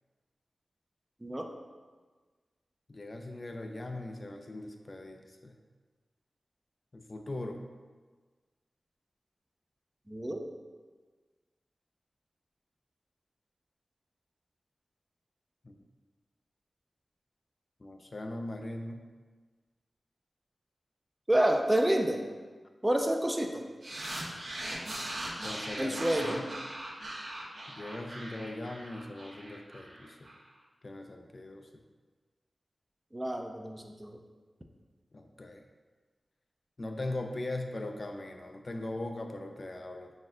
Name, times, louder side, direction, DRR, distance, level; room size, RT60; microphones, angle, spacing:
voice 1, 2.9-5.6 6.9-7.6 15.6-15.7 17.8-19.1 25.4-26.5 27.7-30.2 30.8-31.8 35.1-35.6 36.8-40.1, left 2 dB, 50° left, 4 dB, 0.3 m, -40 dB
voice 2, 10.1-10.4 21.3-22.2 22.8-23.6 25.8-26.4 33.1-34.2, right 1 dB, 20° right, 4 dB, 0.4 m, -28 dB
sound 1, 23.8-30.3, right 1 dB, 70° right, 0.8 m, -40 dB
4.2 x 3.5 x 2.4 m, 1.4 s
cardioid pair, 50°, 0 cm